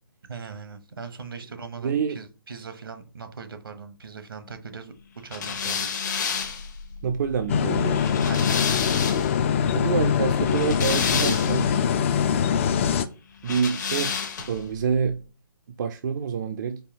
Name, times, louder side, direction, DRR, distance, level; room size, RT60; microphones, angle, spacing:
voice 1, 0.3-6.0 8.3-8.5, right 5 dB, 80° right, 0.8 m, -40 dB
voice 2, 1.8-2.2 7.0-8.1 9.7-11.7 13.4-14.1 14.5-15.2 15.8-16.8, right 6 dB, 55° right, 0.4 m, -27 dB
sound 1, 5.3-9.4 10.3-11.8 13.4-14.7, left 6 dB, 55° left, 0.9 m, -30 dB
sound 2, 7.5-13.1, left 7 dB, 35° left, 0.3 m, -23 dB
4.4 x 2.7 x 2.8 m
figure-of-eight pair, 140°, 12 cm